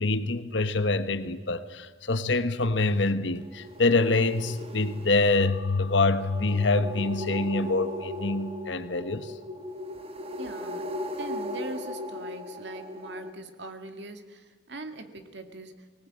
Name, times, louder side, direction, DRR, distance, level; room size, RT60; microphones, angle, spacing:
voice 1, 0.0-9.3, left 3 dB, 70° left, 11 dB, 1.1 m, -26 dB
sound 1, 3.4-13.3, left 1 dB, 30° right, 1.4 m, -38 dB
sound 2, 5.2-8.1, left 4 dB, 85° left, 0.8 m, -31 dB
voice 2, 10.4-16.1, right 2 dB, 60° right, 7 dB, 2.0 m, -41 dB
20.0 x 19.0 x 8.7 m, 1.5 s
head